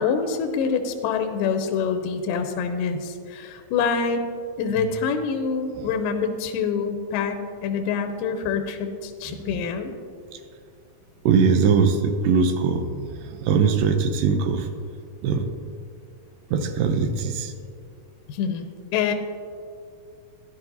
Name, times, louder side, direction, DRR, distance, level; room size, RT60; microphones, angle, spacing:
voice 1, 0.0-4.2 4.6-9.9 18.3-19.1, left 6 dB, 80° left, 6 dB, 2.2 m, -26 dB
voice 2, 11.2-14.7 15.2-15.5 16.5-17.5, right 5 dB, 80° right, 7 dB, 2.3 m, -21 dB
13.5 x 11.0 x 2.7 m, 2.3 s
omnidirectional pair, 4.1 m